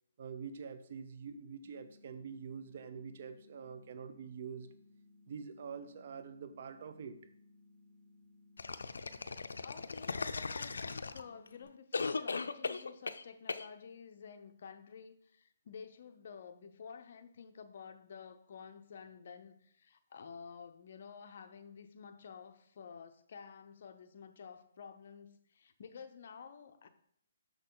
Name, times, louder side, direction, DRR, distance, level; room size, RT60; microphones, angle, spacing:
voice 1, 0.2-4.7 5.3-7.2, right 6 dB, 50° right, 10 dB, 0.7 m, -45 dB
sound 1, 1.6-11.6, left 2 dB, 20° left, 1.1 m, -63 dB
sound 2, 8.6-11.5 11.9-13.2 13.5-13.7, left 4 dB, 90° left, 0.4 m, -38 dB
voice 2, 9.6-26.9, left 6 dB, 55° left, 9 dB, 0.7 m, -51 dB
6.5 x 6.1 x 3.9 m, 0.69 s
hypercardioid pair, 155°, 0 cm